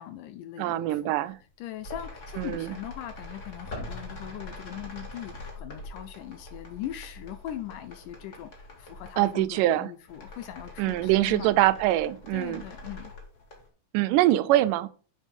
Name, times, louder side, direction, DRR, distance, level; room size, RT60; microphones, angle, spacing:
voice 1, 0.0-11.6 12.3-13.1, left 12 dB, 80° left, 2.2 m, -40 dB
voice 2, 0.6-1.4 2.4-2.7 9.2-9.9 10.8-12.6 13.9-14.9, right 15 dB, 85° right, 2.2 m, -24 dB
sound 1, 1.4-1.5 1.8-9.7 10.0-13.7, left 2 dB, 30° left, 1.7 m, -43 dB
7.2 x 5.3 x 5.3 m
omnidirectional pair, 3.8 m